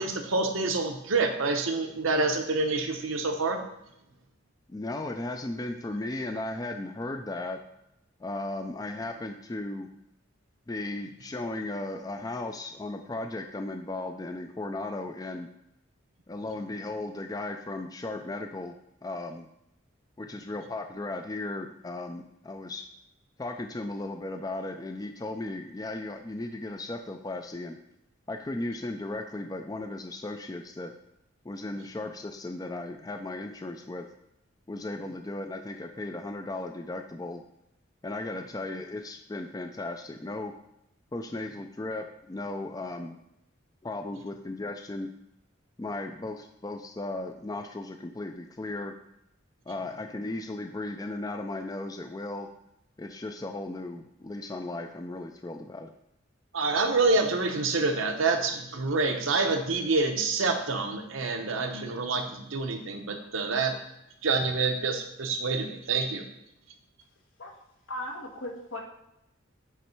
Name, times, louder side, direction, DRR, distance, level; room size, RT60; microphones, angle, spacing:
voice 1, 0.0-3.6 56.5-63.7 64.2-66.2, right 3 dB, 75° right, 4 dB, 0.8 m, -27 dB
voice 2, 4.7-7.6 8.2-9.9 10.7-15.5 16.3-19.5 20.2-22.8 23.4-27.8 28.3-30.9 31.4-34.1 34.7-37.4 38.0-40.5 41.1-43.2 43.8-45.1 45.8-48.9 49.7-52.5 53.0-55.9, left 2 dB, 20° left, 5 dB, 0.3 m, -36 dB
voice 3, 67.9-68.8, left 1 dB, 80° left, 0 dB, 1.4 m, -37 dB
8.2 x 3.2 x 4.5 m, 0.83 s
head